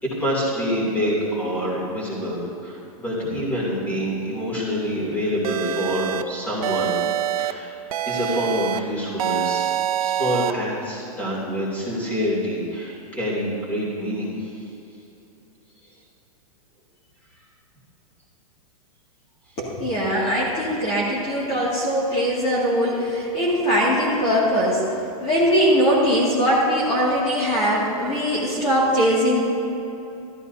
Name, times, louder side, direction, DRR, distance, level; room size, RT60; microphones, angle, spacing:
voice 1, 0.0-7.0 7.4-7.7 8.1-14.6, equal, 10° left, -6 dB, 2.8 m, -26 dB
sound 1, 5.4-6.2 6.6-7.5 7.9-8.8 9.2-10.5, right 11 dB, 70° right, 0.6 m, -25 dB
voice 2, 19.6-24.8 25.2-29.4, equal, 30° left, -7 dB, 2.2 m, -21 dB
14.5 x 13.5 x 2.7 m, 2.9 s
supercardioid pair, 155°, 19 cm